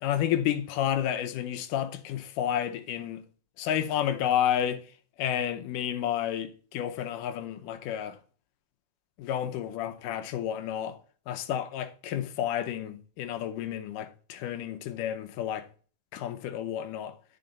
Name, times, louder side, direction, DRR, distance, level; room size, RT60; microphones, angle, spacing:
voice 1, 0.0-3.2 3.6-4.8 5.2-8.2 9.2-11.0 11.3-15.7 16.1-17.2, left 10 dB, 85° left, 2.4 m, -30 dB
11.5 x 4.3 x 3.9 m
omnidirectional pair, 3.7 m